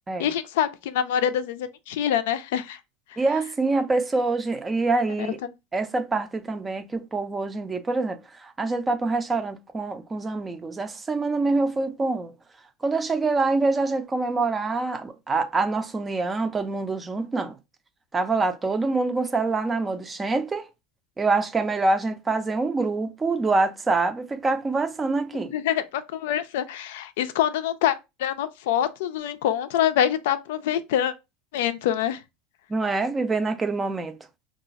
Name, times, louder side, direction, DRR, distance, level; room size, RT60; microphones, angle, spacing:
voice 1, 0.2-2.8 25.5-31.1 31.5-32.2, left 10 dB, 80° left, 0.4 m, -25 dB
voice 2, 3.2-5.4 5.7-12.3 12.8-17.6 18.1-20.7 21.2-25.5 32.7-34.2, right 3 dB, 15° right, 0.4 m, -25 dB
2.3 x 2.3 x 4.0 m
supercardioid pair, 135°, 0 cm